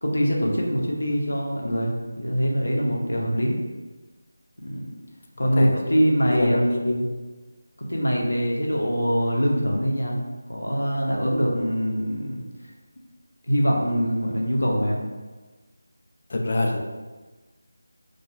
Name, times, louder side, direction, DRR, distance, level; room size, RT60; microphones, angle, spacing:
voice 1, 0.0-3.6 4.6-4.9 5.4-6.8 7.8-10.2 10.5-12.4 13.5-15.0, equal, 90° left, -1 dB, 0.7 m, -23 dB
voice 2, 5.4-6.0 6.3-7.1 16.3-16.8, left 1 dB, 40° left, 1 dB, 0.4 m, -25 dB
2.3 x 2.3 x 3.1 m, 1.3 s
figure-of-eight pair, 170°, 0 cm